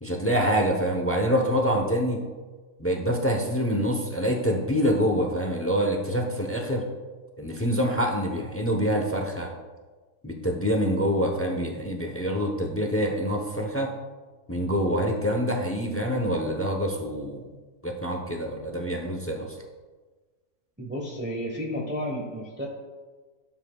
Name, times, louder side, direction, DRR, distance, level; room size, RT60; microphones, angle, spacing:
voice 1, 0.0-2.2 2.8-6.8 7.4-9.5 10.2-13.9 14.5-17.5 17.8-19.6, equal, 15° left, 1 dB, 0.5 m, -26 dB
voice 2, 20.8-22.7, equal, 10° right, -1 dB, 0.9 m, -32 dB
11.5 x 7.3 x 2.3 m, 1.3 s
omnidirectional pair, 1.7 m